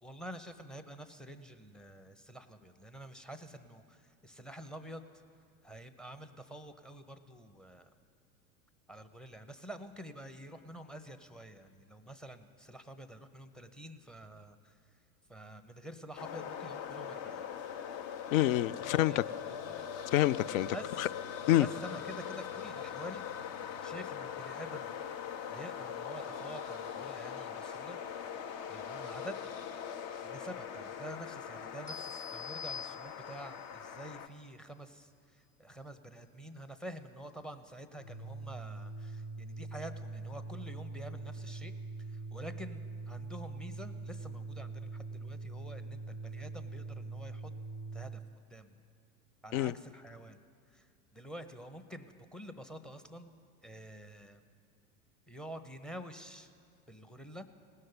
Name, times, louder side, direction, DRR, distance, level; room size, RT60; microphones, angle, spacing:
voice 1, 0.0-5.0 5.6-7.9 8.9-14.8 15.3-17.4 18.8-19.8 20.7-21.1 21.6-23.3 23.8-24.9 25.5-28.0 28.7-29.6 30.2-41.7 42.1-47.5 47.9-48.2 48.5-48.7 49.4-50.4 50.7-53.4 53.6-54.4 55.3-56.5 56.9-57.5, right 1 dB, ahead, 0.6 m, -48 dB
sound 1, 16.2-34.3, left 8 dB, 50° left, 0.9 m, -41 dB
voice 2, 18.3-19.2 20.1-21.1 21.5-21.7 49.5-49.7, left 14 dB, 65° left, 0.5 m, -27 dB
sound 2, 31.9-33.6, left 6 dB, 20° left, 1.2 m, -44 dB
Organ, 37.9-48.3, right 3 dB, 90° left, 1.5 m, -43 dB
18.0 x 6.4 x 9.6 m
hypercardioid pair, 100°, 44 cm